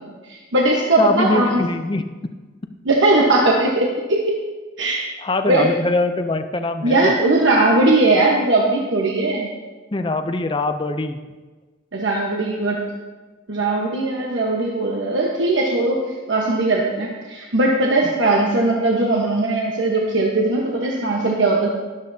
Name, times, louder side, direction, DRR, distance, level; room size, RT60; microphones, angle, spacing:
voice 1, 0.3-1.5 2.8-4.2 4.8-5.0 5.5-5.7 6.8-9.5 11.9-12.8 13.5-16.0 16.3-21.7, right 2 dB, 70° right, -2 dB, 1.1 m, -19 dB
voice 2, 1.0-2.1 5.2-7.1 9.9-11.2 18.0-18.1, left 2 dB, 25° left, 8 dB, 0.5 m, -22 dB
12.5 x 12.0 x 2.7 m, 1.3 s
head